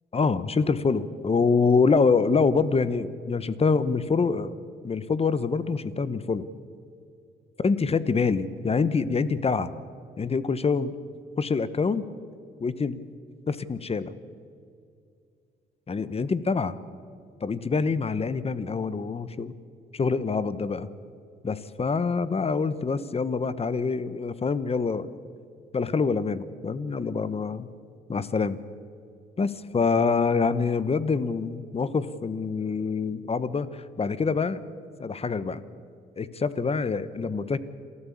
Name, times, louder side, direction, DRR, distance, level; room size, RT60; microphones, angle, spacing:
voice 1, 0.1-4.5 4.8-6.5 7.6-9.7 10.2-10.9 11.4-12.1 12.6-13.0 13.5-14.1 15.9-16.7 17.4-19.5 19.9-20.9 21.4-25.1 25.7-27.7 28.1-28.6 29.4-34.6 35.0-35.6 36.2-37.6, left 4 dB, 30° left, 15 dB, 1.0 m, -25 dB
27.0 x 14.0 x 8.6 m, 2.4 s
cardioid pair, 90°, 20 cm